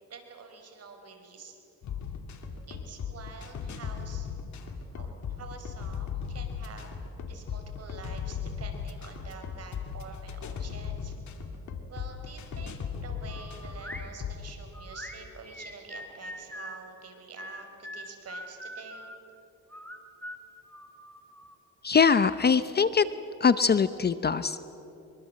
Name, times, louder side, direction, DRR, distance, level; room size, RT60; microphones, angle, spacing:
voice 1, 0.1-1.6 2.7-4.3 4.9-6.9 7.3-11.2 11.9-19.1, right 4 dB, 55° right, 5 dB, 4.5 m, -47 dB
sound 1, 1.8-14.5, left 7 dB, 70° left, 2.6 m, -37 dB
sound 2, 13.3-14.1 14.7-16.8 17.4-19.2 19.7-21.6, equal, 5° left, 2.9 m, -43 dB
voice 2, 21.8-23.0 23.4-24.6, left 6 dB, 35° left, 14 dB, 0.7 m, -22 dB
24.0 x 23.5 x 7.7 m, 3.0 s
cardioid pair, 90°, 30 cm